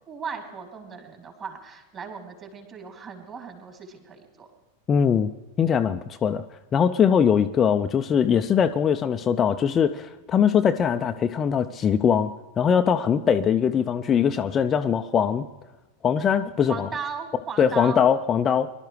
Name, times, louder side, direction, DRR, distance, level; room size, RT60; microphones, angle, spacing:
voice 1, 0.1-4.5 16.7-18.0, right 6 dB, 30° right, 2 dB, 3.4 m, -37 dB
voice 2, 4.9-5.3 5.6-6.4 6.7-15.5 16.0-16.9 17.6-18.7, left 7 dB, 25° left, 8 dB, 0.5 m, -21 dB
23.5 x 12.5 x 3.2 m, 1.1 s
figure-of-eight pair, 90°, 0 cm